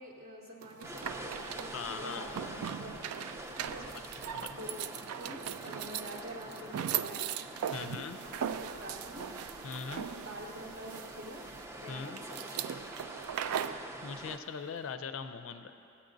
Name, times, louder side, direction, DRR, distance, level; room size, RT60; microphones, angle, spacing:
voice 1, 0.0-7.3 7.7-9.3 9.8-11.4 11.8-12.9, right 1 dB, 50° right, -4 dB, 0.8 m, -47 dB
sound 1, 0.6-13.9, right 9 dB, 85° right, 0.3 m, -39 dB
sound 2, 0.8-14.4, right 1 dB, 10° right, 0.4 m, -46 dB
voice 2, 1.7-2.3 3.9-4.0 4.3-4.7 7.7-8.2 9.6-10.1 11.9-12.2 14.0-15.7, left 6 dB, 65° left, 9 dB, 0.4 m, -40 dB
16.0 x 8.6 x 2.6 m, 2.7 s
head